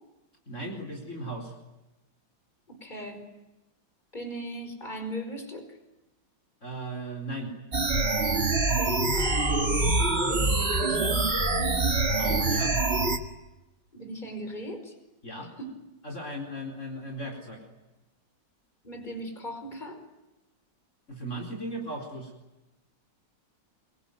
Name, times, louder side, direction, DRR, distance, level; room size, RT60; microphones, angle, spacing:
voice 1, 0.5-1.5 6.6-7.5 12.2-12.8 15.2-15.5 16.0-17.6 21.1-22.3, right 1 dB, 40° left, 2 dB, 4.8 m, -36 dB
voice 2, 2.7-3.3 4.1-5.8 8.8-11.2 13.9-14.9 15.6-15.7 18.8-20.0, right 1 dB, 25° left, 6 dB, 5.2 m, -38 dB
sound 1, 7.7-13.2, right 2 dB, 35° right, 2.4 m, -25 dB
26.5 x 23.5 x 9.3 m, 1.0 s
omnidirectional pair, 2.0 m